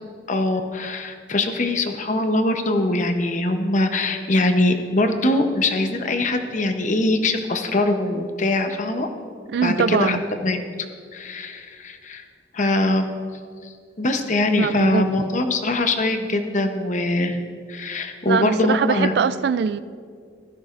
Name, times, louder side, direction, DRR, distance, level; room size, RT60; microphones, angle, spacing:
voice 1, 0.3-9.1 9.6-10.6 11.1-12.2 12.5-13.1 13.6-13.7 14.0-17.4 17.7-19.1, left 2 dB, 45° left, 6 dB, 0.8 m, -22 dB
voice 2, 9.5-10.2 14.5-15.3 18.3-19.8, right 6 dB, 65° right, 15 dB, 0.3 m, -22 dB
16.0 x 13.5 x 2.5 m, 2.1 s
head